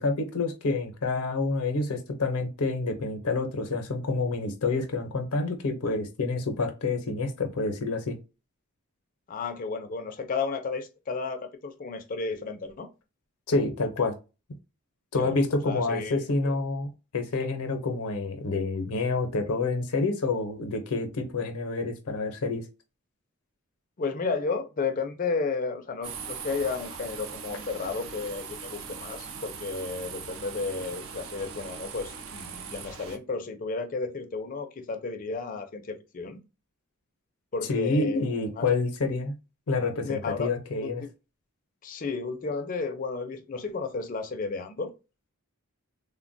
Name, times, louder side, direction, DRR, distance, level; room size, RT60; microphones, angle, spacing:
voice 1, 0.0-8.2 13.5-14.1 15.1-22.6 37.7-39.3 39.7-41.0, left 3 dB, 80° left, 0.6 m, -28 dB
voice 2, 9.3-12.9 15.2-15.4 15.6-16.5 24.0-36.4 37.5-38.7 40.0-40.5 40.8-41.1 41.8-44.9, left 4 dB, 40° left, 0.4 m, -33 dB
sound 1, 26.0-33.2, right 6 dB, 70° right, 0.5 m, -40 dB
3.3 x 2.1 x 2.5 m
head